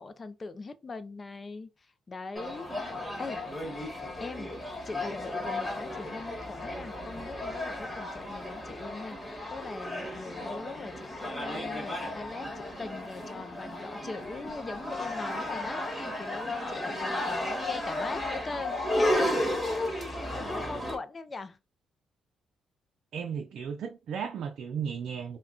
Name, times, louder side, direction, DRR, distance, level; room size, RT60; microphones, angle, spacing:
voice 1, 0.0-1.7 2.1-2.7 3.2-3.4 4.2-4.5 4.8-19.6 20.1-21.6, left 3 dB, 30° left, 0.4 m, -41 dB
sound 1, 2.4-21.0, left 1 dB, 5° left, 1.3 m, -34 dB
voice 2, 20.3-20.9 23.1-25.4, right 7 dB, 70° right, 0.4 m, -36 dB
2.3 x 2.2 x 3.6 m
cardioid pair, 90°, 0 cm